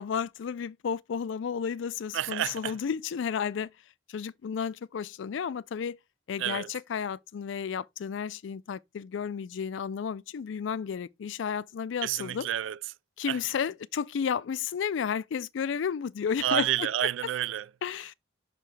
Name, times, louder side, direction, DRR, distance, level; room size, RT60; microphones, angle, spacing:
voice 1, 0.0-3.7 4.1-6.0 6.3-12.5 13.2-16.9 17.8-18.1, left 7 dB, 75° left, 0.4 m, -32 dB
voice 2, 2.1-2.8 6.4-6.7 12.0-12.8 13.3-13.4 16.4-17.7, right 11 dB, 80° right, 0.3 m, -29 dB
5.8 x 5.5 x 3.2 m
head